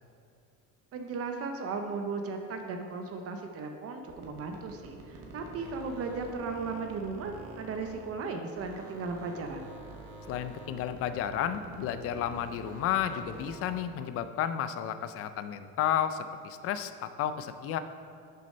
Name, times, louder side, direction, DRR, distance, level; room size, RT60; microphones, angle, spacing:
voice 1, 0.9-9.6, right 4 dB, 45° right, 5 dB, 0.7 m, -36 dB
sound 1, 4.0-8.3 8.5-14.0, right 3 dB, 85° right, 1.4 m, -47 dB
voice 2, 10.3-17.8, left 10 dB, 45° left, 10 dB, 0.4 m, -32 dB
6.7 x 6.4 x 5.4 m, 2.5 s
cardioid pair, 170°, 34 cm